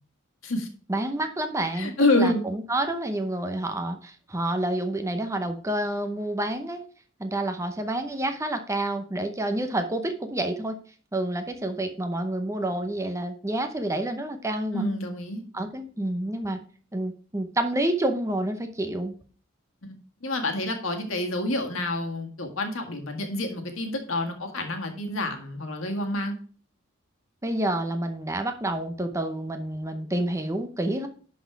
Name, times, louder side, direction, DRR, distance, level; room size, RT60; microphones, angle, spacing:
voice 1, 0.9-6.8 7.2-10.8 11.1-14.9 15.5-16.6 16.9-19.1 27.4-31.1, right 1 dB, 15° right, 6 dB, 0.7 m, -28 dB
voice 2, 1.7-2.4 14.7-15.4 19.8-26.3, left 2 dB, 70° left, 5 dB, 1.7 m, -28 dB
11.0 x 4.2 x 4.5 m, 0.43 s
head